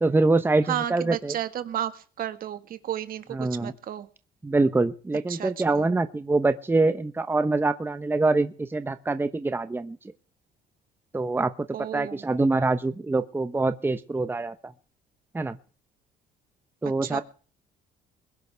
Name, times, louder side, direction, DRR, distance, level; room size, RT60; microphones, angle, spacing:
voice 1, 0.0-1.3 3.3-3.7 4.4-10.0 11.1-11.5 11.9-14.7 15.3-15.6 16.8-17.2, right 3 dB, 10° right, 10 dB, 0.9 m, -24 dB
voice 2, 0.7-4.1 5.3-5.9 11.7-12.2 17.0-17.2, right 11 dB, 60° right, 10 dB, 1.8 m, -32 dB
22.0 x 11.0 x 3.5 m, 0.39 s
cardioid pair, 110°, 17 cm